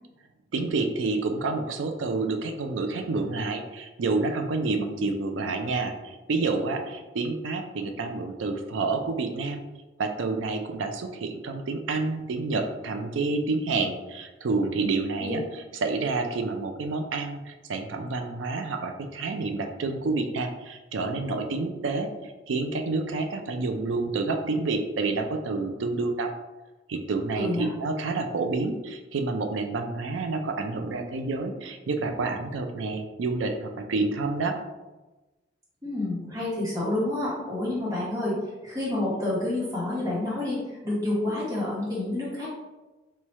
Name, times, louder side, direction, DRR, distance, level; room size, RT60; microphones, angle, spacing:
voice 1, 0.5-9.6 10.0-26.3 26.9-34.6, right 3 dB, 90° right, 6 dB, 0.4 m, -29 dB
voice 2, 27.4-27.7 35.8-38.3 38.6-42.5, left 1 dB, 20° right, -9 dB, 1.1 m, -29 dB
3.1 x 2.3 x 4.1 m, 1.1 s
head